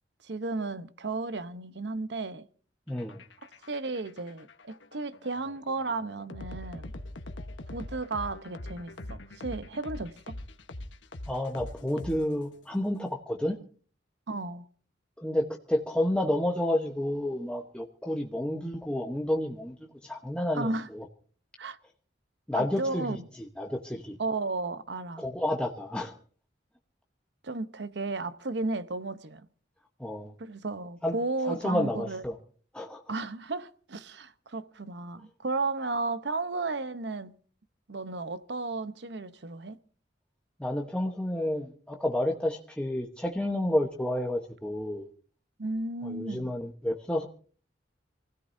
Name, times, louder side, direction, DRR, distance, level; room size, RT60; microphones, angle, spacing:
voice 1, 0.2-2.5 3.4-6.9 7.7-10.4 14.3-14.7 20.5-20.9 21.6-21.8 22.5-23.2 24.2-25.2 27.4-29.5 30.4-32.2 33.1-37.4 37.9-39.8 43.6-43.7 45.6-46.6, right 3 dB, 65° right, 0.9 m, -34 dB
sound 1, 2.9-12.6, left 1 dB, 90° left, 1.2 m, -43 dB
voice 2, 2.9-3.2 11.3-13.6 15.2-19.8 20.0-21.0 22.5-23.2 23.6-24.2 25.2-26.1 30.0-30.3 31.0-31.1 31.4-32.3 32.7-33.0 40.6-45.1 46.0-47.3, left 1 dB, 5° left, 1.0 m, -30 dB
27.0 x 16.0 x 2.7 m
head